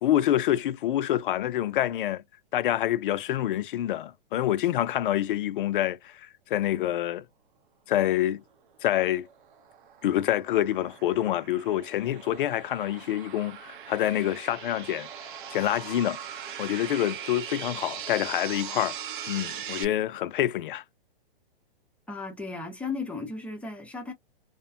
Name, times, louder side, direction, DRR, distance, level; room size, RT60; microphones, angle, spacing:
voice 1, 0.0-2.2 2.5-6.2 6.5-7.2 7.9-8.4 8.8-9.3 10.0-15.1 15.5-16.2 16.6-18.9 19.3-20.8, left 12 dB, 60° left, 0.5 m, -26 dB
sound 1, 9.0-19.9, right 9 dB, 55° right, 0.7 m, -40 dB
voice 2, 22.1-24.1, left 4 dB, 5° left, 0.5 m, -35 dB
2.6 x 2.1 x 2.4 m
hypercardioid pair, 130°, 30 cm